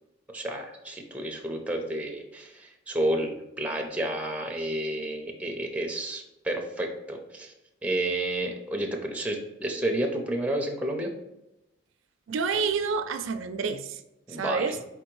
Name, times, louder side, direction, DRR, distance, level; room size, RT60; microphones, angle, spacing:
voice 1, 0.3-7.5 7.8-11.1 14.3-14.7, right 1 dB, 5° right, 2 dB, 0.5 m, -30 dB
voice 2, 12.3-14.0 14.3-14.8, right 5 dB, 75° right, 8 dB, 0.4 m, -28 dB
4.4 x 3.4 x 3.1 m, 0.91 s
head